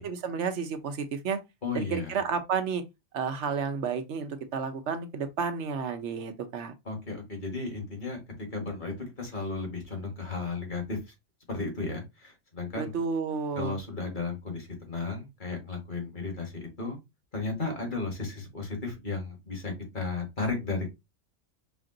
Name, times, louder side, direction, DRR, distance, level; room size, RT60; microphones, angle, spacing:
voice 1, 0.0-1.4 1.7-2.8 3.1-6.7 12.8-13.8, right 6 dB, 65° right, 1.0 m, -31 dB
voice 2, 1.6-2.2 6.9-8.2 8.5-11.0 11.5-12.9 13.6-17.0 17.3-20.9, left 3 dB, 40° left, 1.7 m, -34 dB
5.1 x 2.5 x 3.8 m
omnidirectional pair, 1.3 m